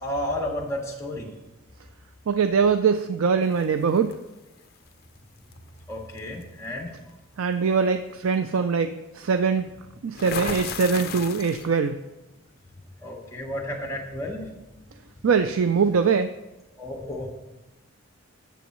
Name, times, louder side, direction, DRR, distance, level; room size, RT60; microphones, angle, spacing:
voice 1, 0.0-1.3 5.9-6.9 13.0-14.4 16.8-17.3, left 1 dB, 15° left, 1 dB, 1.6 m, -32 dB
voice 2, 2.3-4.1 7.4-9.6 10.0-12.0 15.2-16.3, right 5 dB, 70° right, 9 dB, 0.4 m, -22 dB
sound 1, 3.5-4.1 5.5-5.7 6.2-6.4 10.1-11.8, left 6 dB, 45° left, 0.6 m, -33 dB
19.0 x 7.0 x 3.1 m, 1.1 s
head